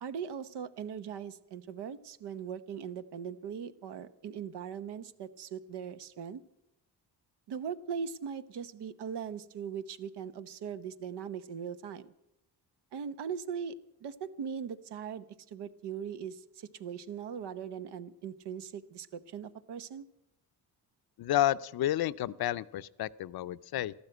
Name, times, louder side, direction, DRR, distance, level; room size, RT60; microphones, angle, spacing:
voice 1, 0.0-6.4 7.5-12.1 12.9-13.7 14.0-20.1, right 7 dB, 75° right, 13 dB, 1.0 m, -40 dB
voice 2, 21.2-23.9, left 13 dB, 65° left, 16 dB, 0.6 m, -30 dB
13.5 x 12.5 x 7.9 m, 0.85 s
cardioid pair, 110°, 41 cm